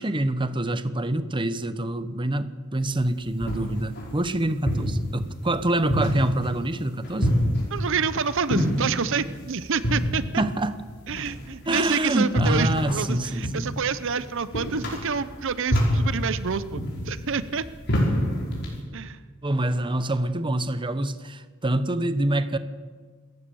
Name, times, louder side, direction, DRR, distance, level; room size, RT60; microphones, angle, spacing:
voice 1, 0.0-7.4 10.4-10.8 11.7-13.7 19.4-22.6, right 1 dB, 25° right, 11 dB, 0.9 m, -26 dB
sound 1, 2.9-18.8, equal, 55° left, 5.6 m, -28 dB
voice 2, 7.7-10.4 11.1-17.6 18.9-19.2, right 5 dB, 65° right, 14 dB, 0.8 m, -28 dB
27.5 x 15.0 x 7.1 m, 1.5 s
head